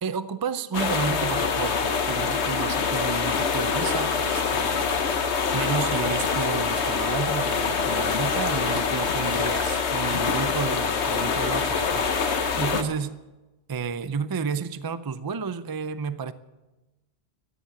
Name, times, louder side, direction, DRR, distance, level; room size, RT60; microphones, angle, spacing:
voice 1, 0.0-4.9 5.5-12.1 12.6-13.2 13.7-16.3, right 5 dB, 30° right, 0.4 m, -31 dB
sound 1, 0.7-12.8, left 5 dB, 75° left, 1.4 m, -25 dB
13.5 x 10.0 x 8.7 m
omnidirectional pair, 1.1 m